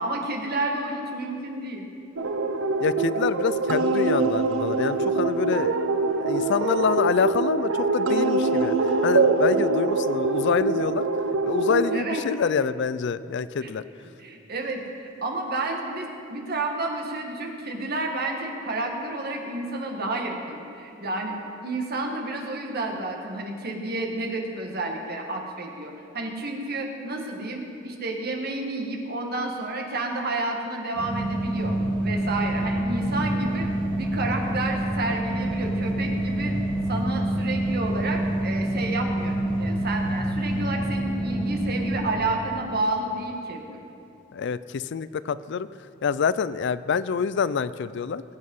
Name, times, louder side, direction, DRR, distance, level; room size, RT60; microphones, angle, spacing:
voice 1, 0.0-1.9 11.9-12.2 13.6-13.7 14.2-21.3 21.6-33.7 34.0-36.5 36.9-43.8, right 2 dB, 50° right, 2 dB, 1.8 m, -30 dB
sound 1, 2.2-12.0, right 3 dB, 70° right, 0.8 m, -24 dB
voice 2, 2.8-11.1 11.5-13.8 44.3-45.7 46.0-48.2, left 6 dB, 60° left, 16 dB, 0.4 m, -26 dB
sound 2, 30.9-42.0, right 1 dB, 5° left, 2.4 m, -27 dB
21.5 x 8.7 x 5.5 m, 2.7 s
head